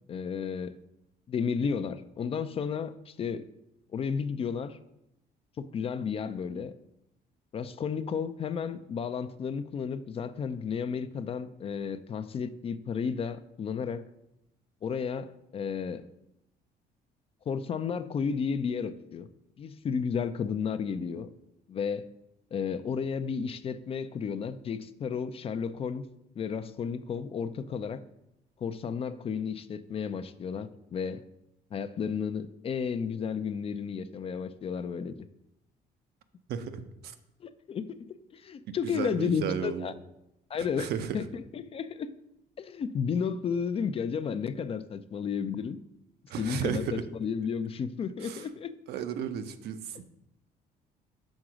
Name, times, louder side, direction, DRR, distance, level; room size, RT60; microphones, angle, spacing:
voice 1, 0.1-0.8 1.3-3.5 3.9-4.8 5.6-6.7 7.5-14.0 14.8-16.1 17.5-19.3 19.6-21.3 21.7-22.1 22.5-26.1 26.4-28.0 28.6-31.2 31.7-35.3 37.4-38.0 38.3-39.9 40.5-42.1 42.6-45.8 46.4-48.8, left 6 dB, 35° left, 12 dB, 0.4 m, -33 dB
voice 2, 36.5-37.1 38.7-39.9 40.5-41.2 46.3-47.0 48.2-48.5 48.9-50.0, right 8 dB, 70° right, 9 dB, 0.6 m, -34 dB
6.2 x 3.7 x 6.1 m, 0.86 s
cardioid pair, 110°, 17 cm